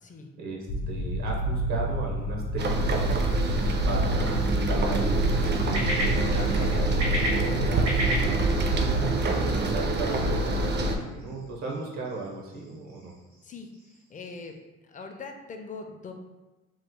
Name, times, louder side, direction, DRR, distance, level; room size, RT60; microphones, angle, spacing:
voice 1, 0.4-3.1 3.9-8.9 9.6-13.1, right 3 dB, 70° right, -1 dB, 0.8 m, -37 dB
sound 1, 0.7-9.1, right 1 dB, 80° left, 0.7 m, -30 dB
sound 2, 2.6-11.0, right 2 dB, 35° right, 0.4 m, -26 dB
sound 3, 3.9-14.6, equal, 85° right, 1.4 m, -37 dB
voice 2, 14.1-14.5 14.9-16.1, left 4 dB, 25° left, 4 dB, 0.4 m, -41 dB
3.0 x 2.0 x 3.5 m, 1.1 s
cardioid pair, 90°, 30 cm